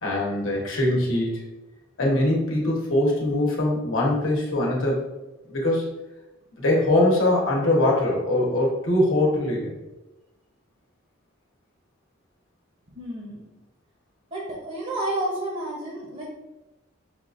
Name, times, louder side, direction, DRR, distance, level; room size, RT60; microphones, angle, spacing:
voice 1, 0.0-1.4 2.0-5.0 5.5-5.8 6.6-9.8, left 1 dB, 70° left, -3 dB, 1.0 m, -22 dB
voice 2, 12.9-13.4 14.3-16.2, right 1 dB, 40° right, -4 dB, 0.8 m, -30 dB
5.7 x 2.4 x 2.4 m, 1.0 s
head